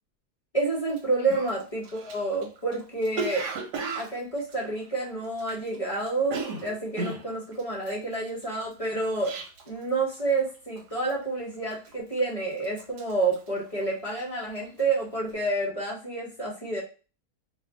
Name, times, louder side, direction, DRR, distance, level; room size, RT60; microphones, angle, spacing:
voice 1, 0.5-3.4 4.0-9.3 9.7-16.8, right 3 dB, 30° left, -4 dB, 0.7 m, -29 dB
Cough, 0.9-1.0 1.3-5.8 6.0-9.8 10.1-10.5 10.8-11.2 11.7-12.3 12.6-14.3 14.6-14.9, right 4 dB, 85° right, 1.2 m, -36 dB
2.5 x 2.4 x 3.4 m, 0.35 s
omnidirectional pair, 1.7 m